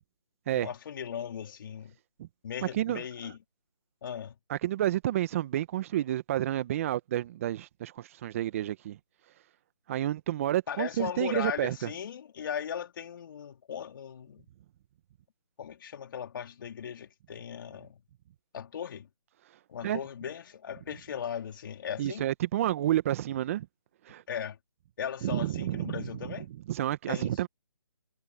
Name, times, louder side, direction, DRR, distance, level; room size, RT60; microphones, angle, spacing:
voice 1, 0.5-2.0 2.4-3.4 4.0-4.4 10.7-14.4 15.6-18.0 18.5-19.1 19.7-22.3 24.3-24.6 25.0-26.5 27.1-27.4, left 8 dB, 40° left, 3.2 m, -38 dB
voice 2, 4.5-9.0 9.9-11.8 19.8-20.0 22.0-23.7 24.0-24.2 25.2-26.1 26.7-27.5, right 12 dB, 25° right, 1.3 m, -30 dB
figure-of-eight pair, 155°, 16 cm